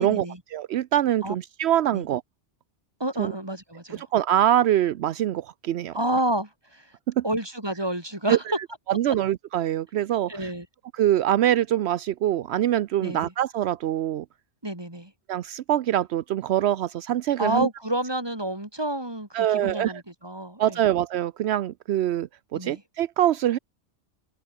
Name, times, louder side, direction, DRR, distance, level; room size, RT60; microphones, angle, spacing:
voice 1, 0.0-0.4 1.2-1.4 1.9-2.0 3.0-4.1 5.9-6.9 7.2-8.4 10.3-10.7 13.0-13.3 14.6-15.1 17.4-20.8 22.5-22.8, right 1 dB, 20° right, 4.2 m, -29 dB
voice 2, 0.5-2.2 3.2-3.3 3.9-6.0 7.1-7.2 8.3-10.5 10.9-14.3 15.3-17.7 19.3-20.0 20.6-23.6, right 12 dB, 80° right, 0.9 m, -24 dB
open air
omnidirectional pair, 1.1 m